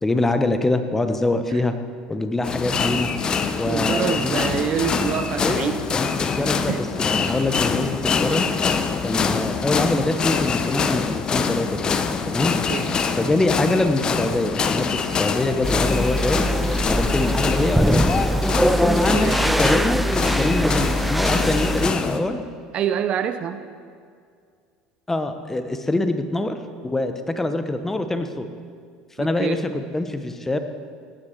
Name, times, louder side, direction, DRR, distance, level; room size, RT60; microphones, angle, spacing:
voice 1, 0.0-1.7 2.1-3.1 3.6-4.4 5.4-8.5 9.0-11.8 12.3-12.6 13.2-16.5 16.9-18.3 18.8-20.0 20.4-22.4 25.1-26.6 26.8-28.5 29.2-30.6, left 2 dB, 15° left, 8 dB, 1.1 m, -24 dB
sound 1, 2.4-22.2, left 5 dB, 35° left, 0.9 m, -24 dB
voice 2, 3.7-5.8 6.7-6.8 12.7-12.9 19.1-19.4 20.6-20.7 22.7-23.6 29.2-29.7, right 9 dB, 50° right, 11 dB, 0.7 m, -26 dB
sound 2, 15.6-21.9, equal, 5° right, 0.5 m, -22 dB
17.5 x 9.8 x 4.7 m, 2.1 s
hypercardioid pair, 80°, 2 cm